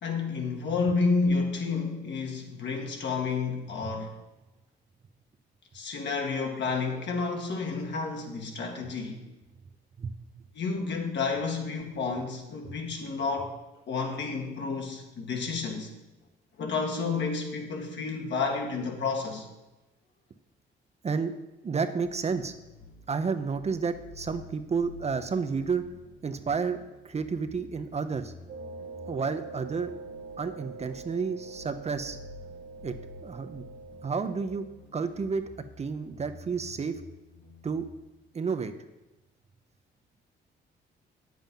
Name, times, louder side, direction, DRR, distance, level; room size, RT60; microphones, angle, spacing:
voice 1, 0.0-4.1 5.7-9.2 10.5-13.6 13.9-15.9 16.6-19.5, left 4 dB, 65° left, 2 dB, 1.8 m, -30 dB
voice 2, 21.0-21.3 21.6-22.5 23.1-25.9 26.2-26.8 27.0-28.3 29.1-29.9 30.4-32.2 32.8-32.9 33.2-33.6 34.0-34.7 34.9-35.5 35.8-37.0 37.6-37.9 38.3-38.7, right 5 dB, 35° right, 9 dB, 0.7 m, -30 dB
sound 1, 22.0-38.0, left 3 dB, 80° left, 2.2 m, -51 dB
sound 2, 28.5-34.6, right 4 dB, 70° right, 1.7 m, -44 dB
8.8 x 7.6 x 5.4 m, 1.0 s
cardioid pair, 90°, 20 cm